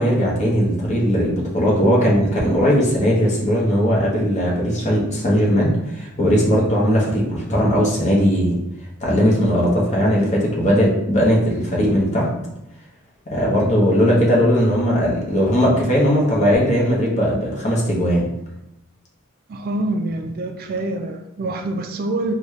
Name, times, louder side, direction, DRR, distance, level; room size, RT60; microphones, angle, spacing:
voice 1, 0.0-8.6 9.0-12.3 13.3-18.3, equal, 35° left, -3 dB, 0.9 m, -18 dB
voice 2, 19.5-22.3, right 2 dB, 45° right, 5 dB, 0.3 m, -25 dB
4.0 x 2.3 x 3.1 m, 0.83 s
head